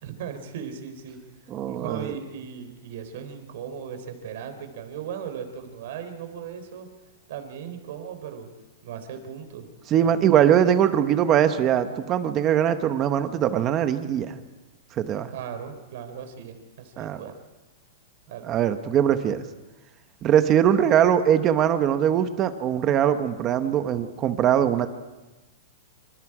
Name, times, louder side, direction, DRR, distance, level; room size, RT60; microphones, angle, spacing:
voice 1, 0.0-1.2 1.7-6.9 7.3-8.5 8.8-9.6 10.0-10.2 15.3-17.3 18.3-18.5, right 8 dB, 55° right, 8 dB, 3.5 m, -37 dB
voice 2, 1.5-2.1 9.9-14.4 15.0-15.3 17.0-17.2 18.4-19.4 20.2-24.9, right 9 dB, 20° right, 10 dB, 1.0 m, -21 dB
27.0 x 26.0 x 4.9 m, 1.1 s
supercardioid pair, 175°, 0 cm